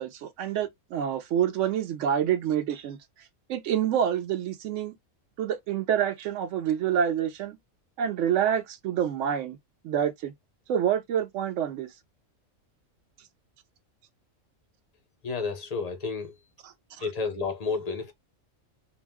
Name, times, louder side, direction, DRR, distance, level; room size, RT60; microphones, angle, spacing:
voice 1, 0.0-3.0 3.5-4.9 5.4-7.6 8.0-9.6 9.8-10.3 10.7-11.9 16.9-17.1, right 9 dB, 70° right, 0.9 m, -27 dB
voice 2, 15.2-16.3 17.0-18.1, left 4 dB, 50° left, 0.4 m, -31 dB
2.5 x 2.1 x 3.3 m
omnidirectional pair, 1.4 m